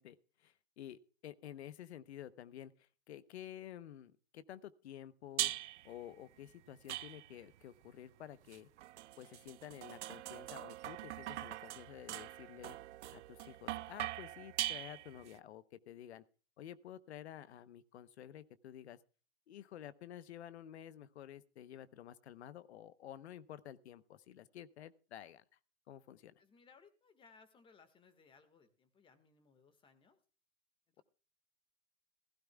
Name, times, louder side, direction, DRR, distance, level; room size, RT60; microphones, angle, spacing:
voice 1, 0.0-5.5 5.8-8.7 9.2-12.8 13.1-16.2 16.6-19.0 19.5-25.4 25.9-26.3, left 11 dB, 70° left, 15 dB, 1.0 m, -51 dB
sound 1, 5.4-5.9 6.9-7.6 8.5-15.3, right 15 dB, 80° right, 0.5 m, -42 dB
voice 2, 26.4-30.2 30.9-31.0, left 5 dB, 15° left, 11 dB, 1.7 m, -65 dB
16.0 x 15.5 x 2.3 m, 0.37 s
hypercardioid pair, 145°, 35 cm